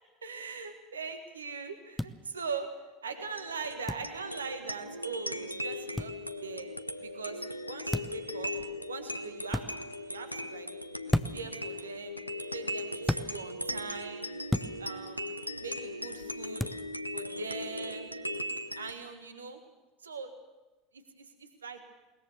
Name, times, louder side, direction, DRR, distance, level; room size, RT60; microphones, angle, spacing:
voice 1, 0.2-2.7 3.0-6.7 7.0-10.7 11.1-12.2 12.5-14.3 14.8-16.8 17.1-18.1 18.7-19.6 20.0-20.3 20.9-21.8, right 5 dB, 75° right, 8 dB, 1.6 m, -41 dB
sound 1, 2.0-2.1 3.9-4.1 6.0-6.1 7.9-8.2 9.5-9.7 11.1-11.5 13.0-13.3 14.5-14.7 16.6-16.8, left 1 dB, 5° left, 0.8 m, -30 dB
sound 2, 3.2-18.9, left 1 dB, 90° left, 0.7 m, -38 dB
21.0 x 19.5 x 7.0 m, 1.1 s
figure-of-eight pair, 75°, 0 cm